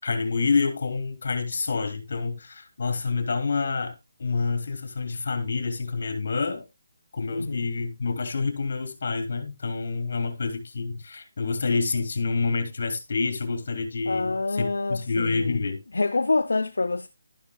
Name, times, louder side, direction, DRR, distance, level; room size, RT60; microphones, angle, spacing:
voice 1, 0.0-6.7 7.1-15.8, left 4 dB, 60° left, 3.4 m, -28 dB
voice 2, 7.3-7.7 14.1-15.6 15.9-17.1, left 3 dB, 80° left, 0.7 m, -26 dB
12.0 x 11.5 x 2.4 m
figure-of-eight pair, 155°, 0 cm